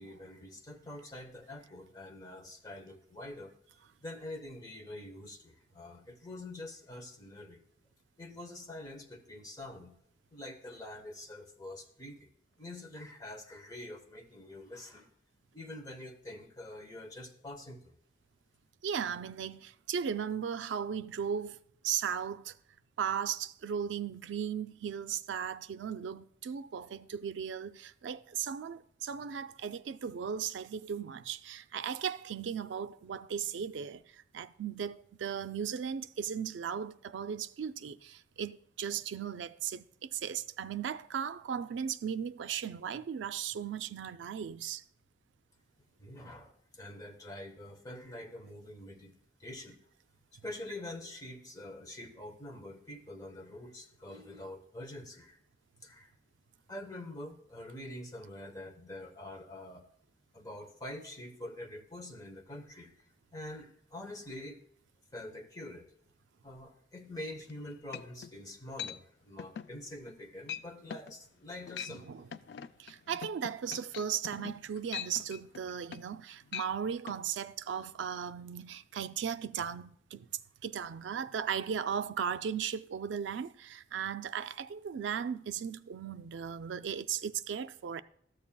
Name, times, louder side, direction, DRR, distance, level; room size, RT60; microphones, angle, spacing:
voice 1, 0.0-3.5 4.0-7.6 8.2-9.9 10.3-12.3 12.6-15.1 15.5-18.0 46.0-49.8 50.4-55.4 55.8-56.1 56.7-59.8 60.3-62.9 63.3-64.6 65.1-65.9 66.4-72.2, left 1 dB, 20° left, 1.0 m, -46 dB
voice 2, 18.8-21.6 21.8-22.5 23.0-44.8 71.9-72.3 72.8-80.3 80.6-88.0, right 7 dB, 90° right, 0.4 m, -37 dB
sound 1, 67.5-67.6 67.9-68.3 68.8-69.0 69.4-69.7 70.1-70.2 70.5-70.6 70.9-71.1 71.6-72.0 72.3-76.2 76.5-76.7 77.1-77.2, left 8 dB, 65° left, 0.3 m, -42 dB
13.0 x 7.2 x 2.2 m
head